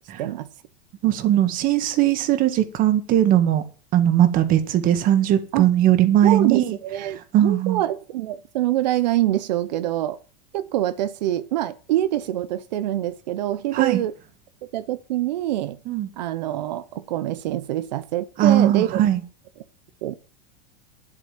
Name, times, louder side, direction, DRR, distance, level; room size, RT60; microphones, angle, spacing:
voice 1, 1.0-3.6 3.9-6.8 7.3-7.8 13.7-14.0 15.9-16.1 18.4-19.2, right 11 dB, 40° right, 1.8 m, -19 dB
voice 2, 6.2-10.2 10.5-14.1 14.7-15.8 16.2-19.0 20.0-20.1, right 13 dB, 90° right, 1.0 m, -25 dB
9.9 x 8.2 x 7.4 m
supercardioid pair, 140°, 21 cm